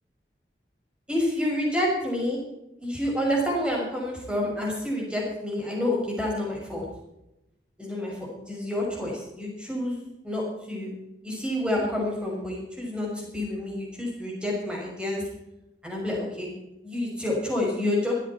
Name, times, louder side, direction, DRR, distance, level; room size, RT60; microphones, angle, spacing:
voice 1, 1.1-2.4 2.8-6.8 7.8-10.0 10.2-10.4 10.7-10.9 11.2-15.2 15.8-16.5 16.8-18.1, left 1 dB, 5° right, -2 dB, 6.0 m, -28 dB
17.5 x 14.0 x 4.4 m, 0.90 s
head